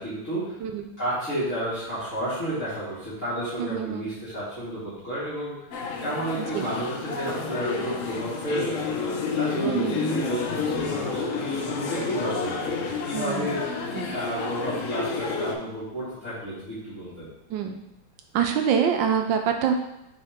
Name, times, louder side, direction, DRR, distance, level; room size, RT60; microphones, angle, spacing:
voice 1, 0.0-0.5 1.0-5.5 6.0-13.8 14.1-17.3, right 1 dB, 35° left, -13 dB, 2.6 m, -31 dB
voice 2, 3.6-4.1 6.5-6.7 9.7-10.0 13.1-13.6 13.9-14.1 17.5-17.8 18.3-19.7, right 7 dB, 75° right, 5 dB, 1.2 m, -25 dB
sound 1, 5.7-15.5, left 5 dB, 85° left, 0.7 m, -30 dB
7.0 x 3.9 x 3.6 m, 0.86 s
omnidirectional pair, 2.2 m